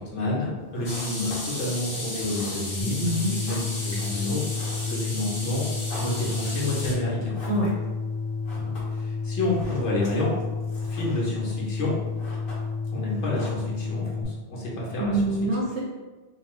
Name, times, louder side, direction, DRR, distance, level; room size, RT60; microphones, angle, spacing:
voice 1, 0.0-3.0 3.4-4.4 4.9-5.7 6.0-7.4 8.5-10.3 10.9-11.9 12.9-15.3, left 2 dB, 80° left, -5 dB, 1.2 m, -29 dB
sound 1, 0.6-14.2, left 1 dB, 55° left, 0.9 m, -46 dB
sound 2, 0.8-6.9, left 1 dB, 40° left, 0.4 m, -34 dB
sound 3, 2.8-14.2, left 4 dB, 55° right, 0.5 m, -31 dB
voice 2, 3.0-3.4 7.5-7.7 15.0-15.8, right 1 dB, 80° right, -4 dB, 0.9 m, -25 dB
2.8 x 2.3 x 3.0 m, 1.2 s
omnidirectional pair, 1.2 m